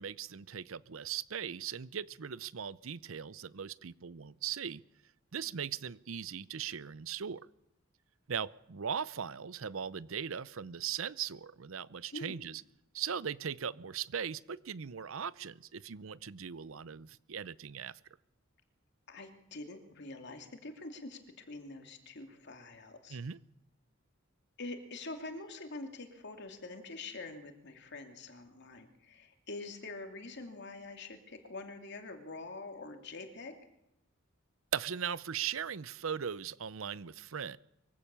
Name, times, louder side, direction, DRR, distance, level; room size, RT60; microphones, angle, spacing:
voice 1, 0.0-4.8 5.3-7.5 8.3-12.6 12.9-18.0 23.1-23.4 34.7-37.6, right 7 dB, 75° right, 19 dB, 0.6 m, -39 dB
voice 2, 19.1-21.2 21.5-23.2 24.6-33.5, left 2 dB, 55° left, 5 dB, 2.7 m, -45 dB
23.0 x 16.0 x 6.9 m, 0.84 s
head